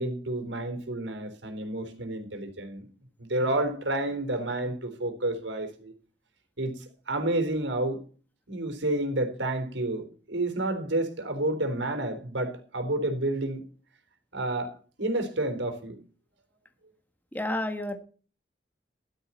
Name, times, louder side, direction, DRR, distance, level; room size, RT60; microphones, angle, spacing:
voice 1, 0.0-2.9 3.2-5.9 6.6-8.0 8.5-13.7 14.3-16.0, right 1 dB, 85° right, 4.0 m, -30 dB
voice 2, 17.3-18.0, left 1 dB, 10° left, 1.5 m, -30 dB
14.0 x 13.0 x 4.5 m
head